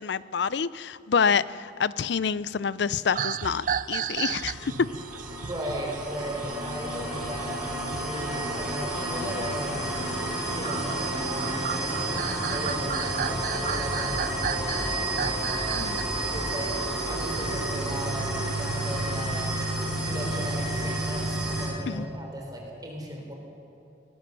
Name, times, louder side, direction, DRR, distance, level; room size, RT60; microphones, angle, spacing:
voice 1, 0.0-4.9 15.7-16.0 21.9-22.1, left 6 dB, 65° left, 0.5 m, -27 dB
sound 1, 3.1-16.0 16.4-16.7, right 8 dB, 45° right, 0.4 m, -35 dB
sound 2, 3.7-21.7, right 1 dB, 5° right, 5.3 m, -30 dB
voice 2, 5.4-10.0 10.5-16.0 16.3-19.4 20.0-23.3, equal, 20° right, 3.7 m, -37 dB
22.0 x 19.0 x 6.9 m
head